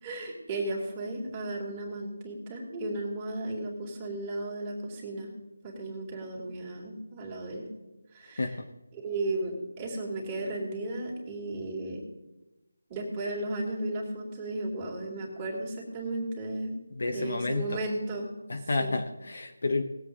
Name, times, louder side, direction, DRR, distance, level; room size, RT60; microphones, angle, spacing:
voice 1, 0.0-5.3 5.6-7.7 8.1-8.4 8.9-12.0 12.9-16.8 17.1-18.3 18.8-18.9, right 2 dB, 15° right, -3 dB, 2.6 m, -34 dB
voice 2, 16.9-17.8 18.5-19.8, left 3 dB, 60° left, 3 dB, 1.2 m, -30 dB
19.0 x 7.9 x 3.8 m, 1.0 s
figure-of-eight pair, 165°, 0 cm